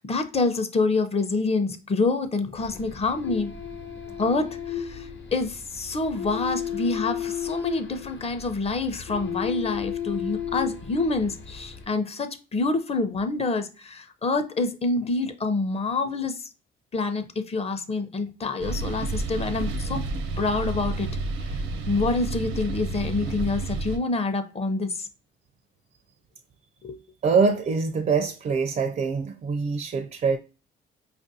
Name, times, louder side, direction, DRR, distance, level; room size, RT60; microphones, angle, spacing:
voice 1, 0.0-3.5 4.2-16.5 16.9-20.0 20.4-21.2 21.4-21.6 21.9-25.1 26.8-27.0, left 3 dB, 30° left, 0.6 m, -27 dB
sound 1, 2.6-11.9, left 9 dB, 65° left, 1.0 m, -34 dB
sound 2, 18.6-24.0, right 3 dB, 80° right, 0.7 m, -30 dB
voice 2, 27.2-30.4, right 5 dB, 40° right, 0.4 m, -24 dB
4.8 x 2.5 x 2.7 m
cardioid pair, 90°, 20 cm